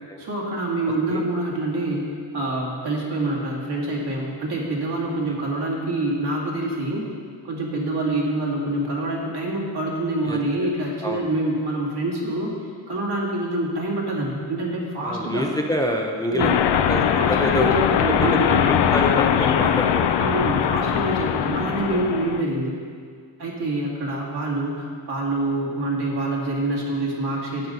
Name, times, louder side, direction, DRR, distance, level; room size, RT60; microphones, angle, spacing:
voice 1, 0.2-7.0 7.4-12.5 12.9-15.5 16.3-16.5 17.2-18.7 20.2-22.7 23.4-27.7, right 2 dB, 65° right, -3 dB, 2.3 m, -26 dB
voice 2, 10.2-10.7 11.0-11.3 15.0-16.5 16.9-17.7 18.2-18.4 18.7-20.2, left 1 dB, 10° left, 1 dB, 0.5 m, -27 dB
sound 1, 16.4-22.4, left 9 dB, 70° left, 0.6 m, -21 dB
12.5 x 9.0 x 4.1 m, 2.1 s
wide cardioid pair, 165°, 43 cm